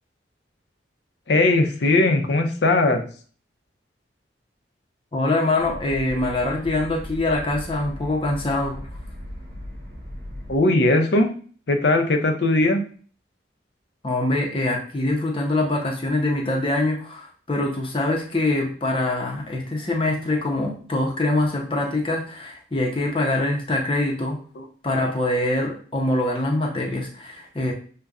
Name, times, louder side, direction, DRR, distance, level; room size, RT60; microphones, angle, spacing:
voice 1, 1.3-3.0 10.5-11.3 11.7-12.8 24.6-24.7, left 2 dB, 65° left, 5 dB, 0.6 m, -19 dB
voice 2, 5.1-8.9 14.0-24.4 24.8-27.7, left 2 dB, 30° left, 0 dB, 0.7 m, -24 dB
sound 1, 5.6-10.6, equal, 55° right, 1.3 m, -37 dB
6.5 x 2.2 x 2.4 m, 0.42 s
head